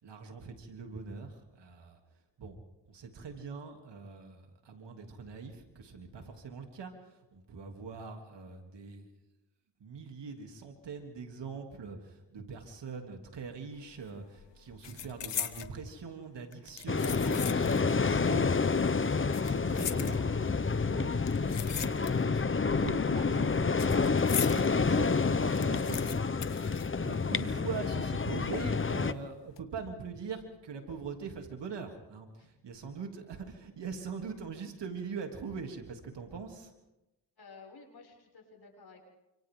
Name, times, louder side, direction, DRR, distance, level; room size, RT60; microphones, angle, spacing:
voice 1, 0.0-2.0 2.4-2.6 2.9-9.1 9.8-26.2 26.6-36.7, right 5 dB, 80° right, 3 dB, 3.3 m, -43 dB
sound 1, 13.8-14.1 14.3-15.8 16.5-17.9 18.2-18.3 19.1-20.6 21.2-22.4 22.7-24.7 25.1-25.2 25.4-27.5 27.7-27.8 28.5-29.0 29.4-29.6, left 10 dB, 80° left, 1.4 m, -39 dB
sound 2, 16.9-29.1, left 4 dB, 30° left, 1.0 m, -29 dB
voice 2, 37.4-39.0, left 4 dB, 65° left, 1 dB, 6.9 m, -53 dB
29.5 x 26.0 x 3.9 m, 0.98 s
cardioid pair, 65°, 42 cm